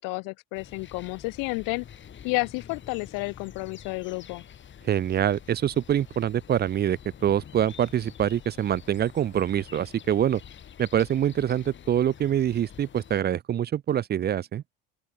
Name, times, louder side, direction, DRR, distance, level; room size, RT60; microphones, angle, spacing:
voice 1, 0.0-1.9 2.2-4.4, left 29 dB, 65° left, 0.5 m, -31 dB
sound 1, 0.5-13.2, left 9 dB, 30° left, 2.3 m, -47 dB
voice 2, 4.8-10.4 10.8-14.6, right 10 dB, 30° right, 0.5 m, -25 dB
open air
cardioid pair, 130°, 35 cm